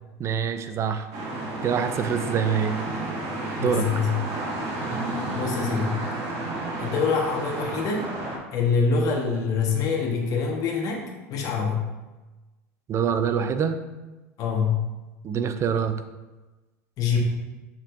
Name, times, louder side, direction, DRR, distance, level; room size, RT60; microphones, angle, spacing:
voice 1, 0.2-1.1 1.6-2.8 3.6-3.9 12.9-13.8 15.2-16.0, right 7 dB, 35° right, 10 dB, 0.6 m, -25 dB
sound 1, 1.1-8.4, right 2 dB, 50° right, 2.0 m, -31 dB
voice 2, 3.6-4.1 5.3-6.0 6.8-8.1 8.5-11.9 14.4-14.9 17.0-17.2, left 5 dB, 50° left, 0 dB, 1.4 m, -25 dB
6.8 x 5.9 x 2.7 m, 1.2 s
hypercardioid pair, 80°, 8 cm